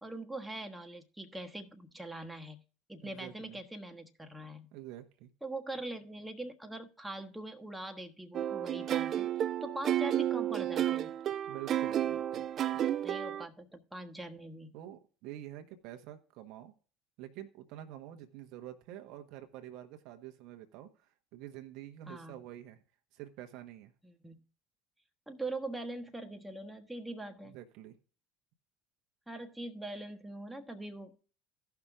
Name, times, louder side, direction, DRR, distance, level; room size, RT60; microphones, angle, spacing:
voice 1, 0.0-2.6 2.9-4.7 5.4-9.3 9.6-11.1 13.0-14.8 22.1-22.4 24.0-24.4 25.3-27.5 29.3-31.2, right 1 dB, 5° right, 1.3 m, -42 dB
voice 2, 3.0-3.6 4.7-5.3 11.5-12.5 12.7-12.8 14.7-16.7 17.2-22.8 23.1-23.9 27.4-28.0, right 13 dB, 60° right, 1.2 m, -47 dB
sound 1, 8.3-13.4, right 11 dB, 45° right, 0.5 m, -32 dB
14.5 x 5.9 x 3.7 m
hypercardioid pair, 70°, 0 cm